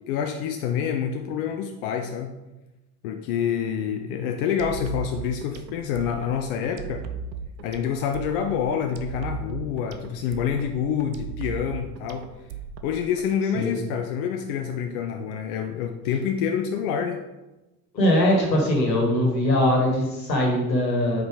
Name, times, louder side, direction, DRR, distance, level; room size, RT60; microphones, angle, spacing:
voice 1, 0.1-2.3 3.0-7.0 7.6-12.3 12.8-17.2, left 8 dB, 55° left, 5 dB, 0.7 m, -27 dB
sound 1, 4.6-13.2, right 6 dB, 90° right, 0.6 m, -36 dB
voice 2, 17.9-21.2, left 1 dB, 80° left, -1 dB, 1.8 m, -21 dB
5.0 x 4.8 x 4.9 m, 1.1 s
figure-of-eight pair, 65°, 49 cm